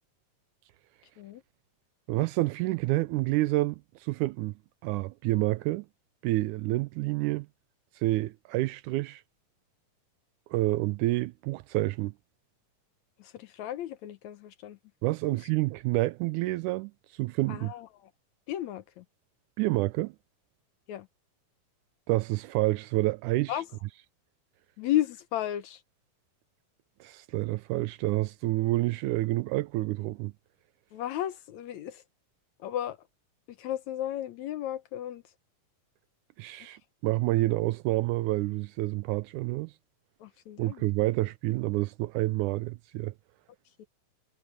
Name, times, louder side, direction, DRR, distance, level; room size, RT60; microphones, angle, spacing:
voice 1, 2.1-4.5 4.8-5.9 6.2-7.5 8.0-9.2 10.5-12.1 15.0-17.7 19.6-20.1 22.1-23.5 27.0-30.3 36.4-39.7 40.6-43.1, right 18 dB, 80° right, 1.9 m, -28 dB
voice 2, 13.2-14.8 17.5-18.1 18.5-19.0 20.9-21.1 23.5-23.7 24.8-25.8 30.9-32.0 32.6-33.0 33.5-35.2 40.2-40.9 43.8-43.9, left 12 dB, 70° left, 2.0 m, -34 dB
omnidirectional pair, 3.8 m